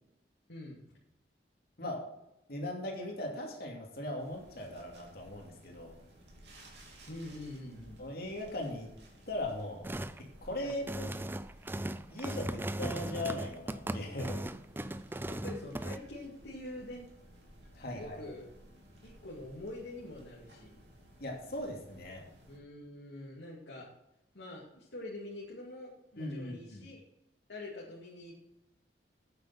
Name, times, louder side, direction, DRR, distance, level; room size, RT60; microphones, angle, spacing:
voice 1, 0.5-1.0 7.1-8.0 10.6-10.8 15.3-17.0 17.9-18.5 19.0-20.7 22.5-23.9 24.3-27.0 27.5-28.4, left 1 dB, 85° left, -4 dB, 2.4 m, -45 dB
voice 2, 2.5-6.0 8.0-8.9 9.3-9.8 10.2-11.2 12.1-14.4 17.7-18.2 21.2-22.2 26.2-26.8, left 1 dB, 60° left, 1 dB, 2.8 m, -39 dB
sound 1, 4.2-22.6, equal, 70° right, 3.0 m, -57 dB
sound 2, 9.8-10.2 10.7-16.0, right 1 dB, 10° right, 0.4 m, -38 dB
8.9 x 7.6 x 5.9 m, 0.88 s
head